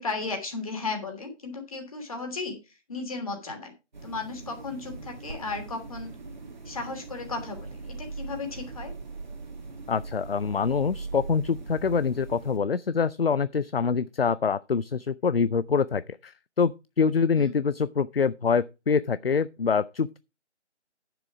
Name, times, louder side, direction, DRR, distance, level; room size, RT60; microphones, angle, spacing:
voice 1, 0.0-2.6 2.9-3.7 4.0-6.1 6.6-8.9 17.3-17.5, left 3 dB, 30° left, 2.8 m, -35 dB
sound 1, 3.9-12.6, right 3 dB, 40° right, 1.7 m, -40 dB
voice 2, 9.9-16.7 17.0-20.2, left 5 dB, 55° left, 0.5 m, -25 dB
10.5 x 7.0 x 4.8 m
figure-of-eight pair, 175°, 36 cm